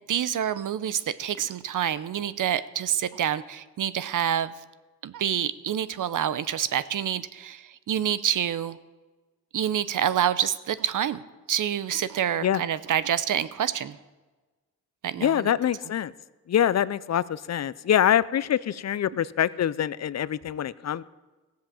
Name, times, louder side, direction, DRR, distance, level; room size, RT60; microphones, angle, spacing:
voice 1, 0.0-4.5 5.0-8.8 9.5-11.2 11.5-14.0 15.0-15.5, right 9 dB, 65° right, 15 dB, 0.7 m, -27 dB
voice 2, 15.2-16.1 16.5-21.0, left 10 dB, 50° left, 18 dB, 0.5 m, -25 dB
15.5 x 7.6 x 7.1 m, 1.2 s
cardioid pair, 55°, 34 cm